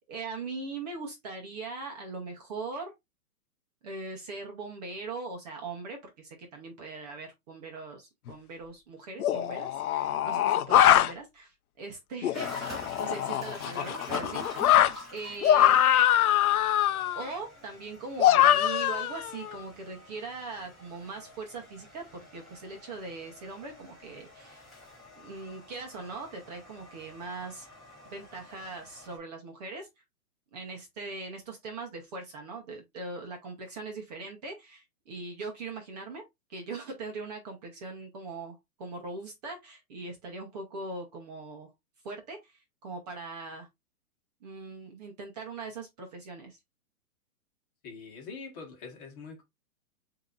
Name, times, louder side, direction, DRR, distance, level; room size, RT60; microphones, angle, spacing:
voice 1, 0.1-2.9 3.8-14.4 15.1-15.8 17.1-24.6 25.2-27.7 28.1-29.9 30.5-36.2 36.5-41.7 42.0-43.7 44.4-46.6, right 3 dB, 30° right, 0.9 m, -40 dB
sound 1, 8.3-8.4 9.2-11.1 12.2-14.9 15.4-17.3 18.2-19.5, left 11 dB, 75° left, 0.6 m, -23 dB
sound 2, 12.3-29.2, left 2 dB, ahead, 1.5 m, -46 dB
voice 2, 47.8-49.4, left 5 dB, 30° left, 1.5 m, -44 dB
7.2 x 2.9 x 2.5 m
hypercardioid pair, 160°, 44 cm